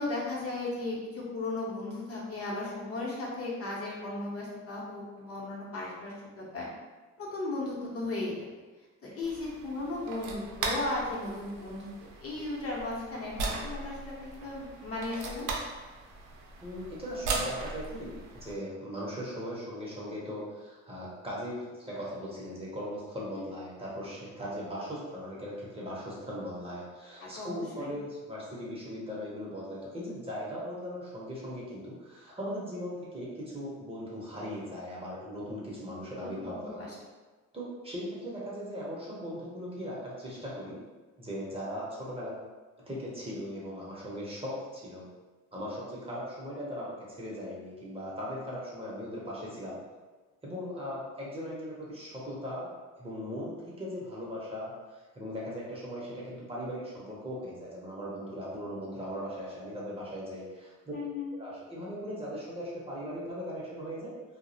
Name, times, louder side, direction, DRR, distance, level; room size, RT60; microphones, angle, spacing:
voice 1, 0.0-6.7 7.2-8.3 9.0-11.9 12.2-15.5 23.4-23.5 27.2-27.5 27.8-27.9 36.4-36.9 60.9-61.3, left 2 dB, 50° left, -5 dB, 0.8 m, -36 dB
sound 1, 9.2-18.5, right 3 dB, 90° right, 0.5 m, -38 dB
voice 2, 16.6-36.7 37.5-40.8 41.2-42.3 42.8-45.1 45.5-49.8 50.4-52.7 53.0-60.9 61.3-64.1, equal, 20° right, -6 dB, 0.6 m, -39 dB
2.3 x 2.0 x 2.6 m, 1.3 s
cardioid pair, 90°, 30 cm